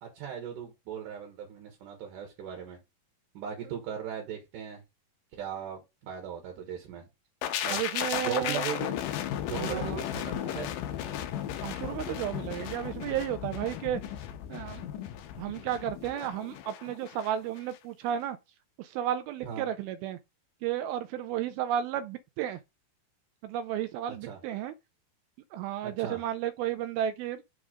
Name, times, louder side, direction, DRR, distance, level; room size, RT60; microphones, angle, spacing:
voice 1, 0.0-2.8 3.3-4.8 5.3-7.0 7.6-7.8 8.1-9.0 9.4-10.7 19.4-19.7 24.2-24.4 25.8-26.2, right 8 dB, 65° right, 2.5 m, -38 dB
sound 1, 7.4-17.3 17.6-17.8, left 11 dB, 85° left, 1.9 m, -35 dB
voice 2, 7.7-8.7 9.6-10.0 11.6-14.0 14.5-14.9 15.4-18.4 18.8-20.2 20.6-22.6 23.4-24.7 25.5-27.4, right 11 dB, 80° right, 2.2 m, -33 dB
6.4 x 3.4 x 4.9 m
omnidirectional pair, 4.6 m